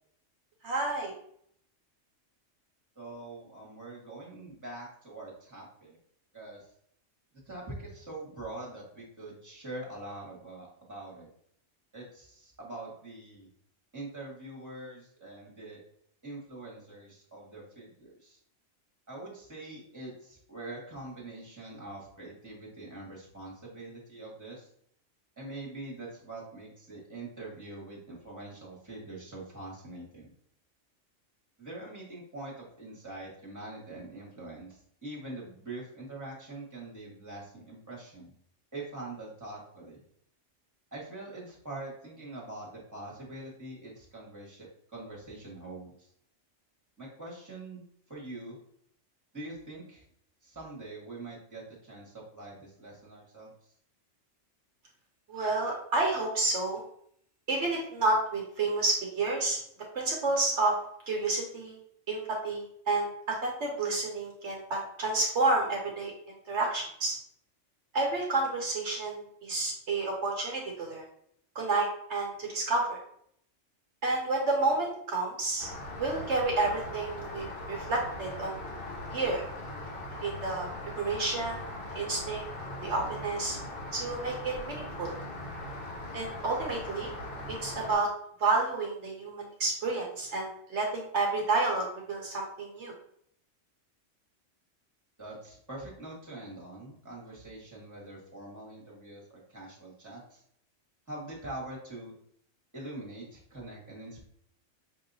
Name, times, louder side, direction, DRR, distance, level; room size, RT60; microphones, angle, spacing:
voice 1, 0.6-1.1 55.3-56.8 57.5-59.6 59.9-60.8 61.1-61.8 62.1-67.2 67.9-71.0 71.5-73.0 74.0-75.7 76.0-78.6 79.1-79.4 80.2-80.7 80.9-81.6 81.9-82.5 82.8-83.6 83.9-85.1 86.1-87.1 87.5-88.1 88.4-92.9, right 3 dB, 65° right, -1 dB, 1.1 m, -30 dB
voice 2, 2.9-6.0 6.3-6.6 7.5-11.3 11.9-13.5 13.9-15.8 16.2-18.4 19.1-24.7 25.4-30.3 31.6-38.3 38.7-40.0 40.9-46.1 47.0-48.6 49.3-50.0 50.4-53.5 95.2-100.4 101.1-102.1 102.7-104.2, right 2 dB, 15° right, -4 dB, 1.4 m, -44 dB
Rain, 75.6-87.9, left 1 dB, 50° left, 1.3 m, -40 dB
5.3 x 2.8 x 2.6 m, 0.66 s
omnidirectional pair, 1.3 m